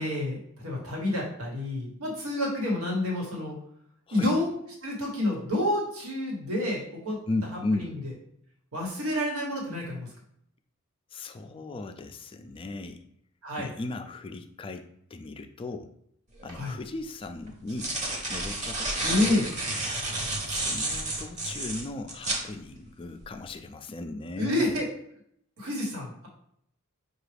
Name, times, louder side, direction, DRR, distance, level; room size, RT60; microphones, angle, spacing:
voice 1, 0.0-3.6 4.1-4.5 4.8-7.2 7.7-8.0 8.7-10.1 13.4-13.7 16.5-16.8 19.0-19.4 24.4-24.9 25.6-26.3, left 1 dB, 85° right, -2 dB, 1.2 m, -29 dB
voice 2, 7.3-7.9 11.1-13.0 13.6-15.9 16.4-17.9 18.3-19.3 20.5-24.8, left 2 dB, 25° left, 6 dB, 0.3 m, -36 dB
sound 1, 16.4-16.5 17.5-22.5, right 2 dB, 35° right, 0.8 m, -31 dB
5.8 x 2.3 x 3.3 m, 0.72 s
head